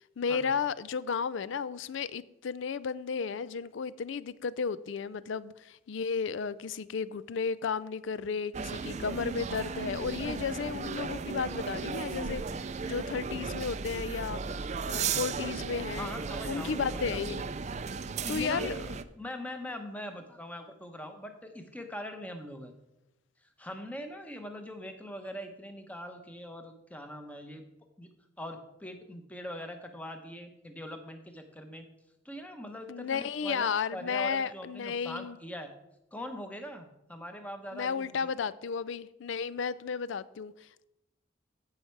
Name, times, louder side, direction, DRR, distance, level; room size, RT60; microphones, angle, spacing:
voice 1, 0.2-12.4 12.8-14.4 14.9-16.1 16.5-17.4 18.3-18.8 32.9-35.4 37.7-40.8, left 6 dB, 70° left, 0.4 m, -33 dB
sound 1, 8.5-19.0, right 5 dB, 35° right, 0.4 m, -35 dB
voice 2, 16.0-17.3 18.0-18.7 19.2-22.7 23.6-27.6 28.0-28.1 28.4-31.9 32.2-35.7 36.1-38.3, equal, 5° left, 0.9 m, -42 dB
15.0 x 5.6 x 4.6 m
head